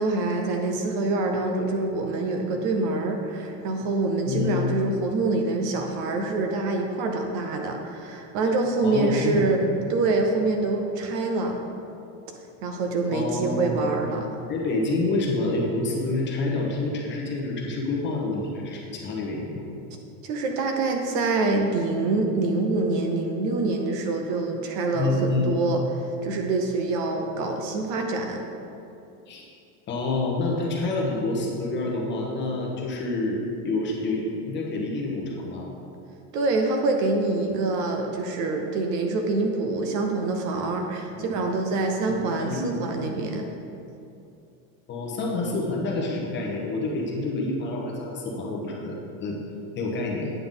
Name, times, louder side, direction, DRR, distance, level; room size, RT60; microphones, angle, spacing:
voice 1, 0.0-11.6 12.6-14.3 20.2-28.4 36.3-43.5, right 3 dB, 40° right, 3 dB, 0.7 m, -25 dB
voice 2, 4.3-4.6 8.8-9.5 13.1-13.8 14.5-19.6 24.9-25.5 29.3-29.5 29.9-35.7 41.1-41.2 42.1-42.8 44.9-49.4 49.7-50.3, left 2 dB, 25° left, -1 dB, 1.1 m, -28 dB
9.2 x 5.7 x 3.9 m, 2.6 s
supercardioid pair, 150°, 45 cm